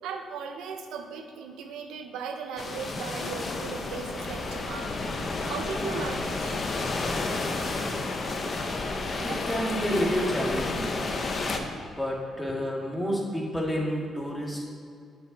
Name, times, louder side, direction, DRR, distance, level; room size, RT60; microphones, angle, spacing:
voice 1, 0.0-5.0 5.5-6.6 9.3-9.4, right 5 dB, 90° right, 4 dB, 0.8 m, -37 dB
sound 1, 2.6-11.6, left 3 dB, 45° left, 0.9 m, -31 dB
voice 2, 9.2-11.0 11.9-14.7, equal, 10° left, -1 dB, 1.7 m, -29 dB
7.9 x 5.6 x 5.2 m, 2.3 s
cardioid pair, 90°, 0 cm